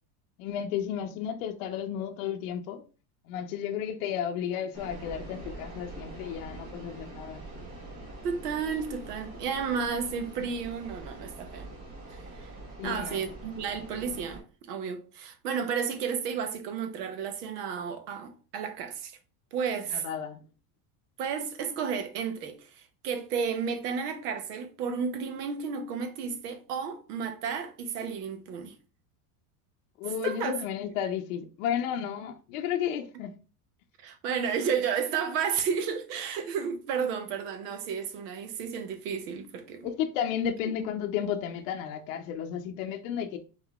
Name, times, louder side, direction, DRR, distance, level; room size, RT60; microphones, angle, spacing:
voice 1, 0.4-2.8 3.3-7.4 12.8-13.2 19.9-20.4 30.0-33.3 39.8-43.4, left 9 dB, 60° left, 0.6 m, -33 dB
sound 1, 4.7-14.4, right 2 dB, 30° right, 1.4 m, -44 dB
voice 2, 8.2-11.7 12.1-12.5 12.8-19.2 19.5-20.1 21.2-28.7 30.2-30.5 34.0-39.9, right 6 dB, 90° right, 1.1 m, -32 dB
3.9 x 3.7 x 3.5 m
supercardioid pair, 180°, 45 cm